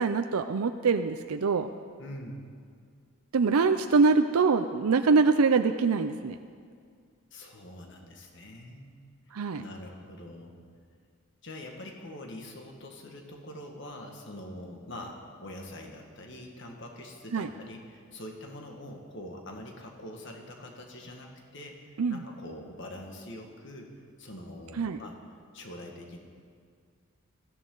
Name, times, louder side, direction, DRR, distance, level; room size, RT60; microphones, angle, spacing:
voice 1, 0.0-1.7 3.3-6.4 9.3-9.6 17.3-17.5 22.0-22.2 24.8-25.0, right 4 dB, 80° right, 8 dB, 0.5 m, -24 dB
voice 2, 2.0-2.5 7.3-8.9 9.6-10.5 11.4-23.9 24.2-25.2 25.5-26.2, left 1 dB, 55° left, 1 dB, 1.8 m, -44 dB
19.5 x 15.0 x 3.9 m, 2.1 s
head